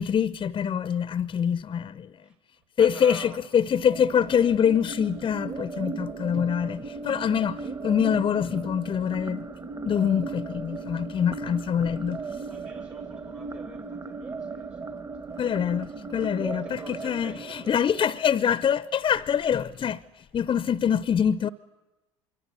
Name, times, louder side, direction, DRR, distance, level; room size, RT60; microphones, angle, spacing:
voice 1, 0.0-2.1 2.8-9.5 9.8-12.2 15.4-20.0 20.3-21.5, left 8 dB, 30° left, 0.8 m, -25 dB
voice 2, 2.7-3.4 12.5-15.8 16.3-17.8, right 2 dB, 85° right, 6.8 m, -46 dB
sound 1, 3.8-18.8, right 4 dB, 25° right, 1.6 m, -37 dB
26.0 x 23.5 x 8.3 m
hypercardioid pair, 70°, 15 cm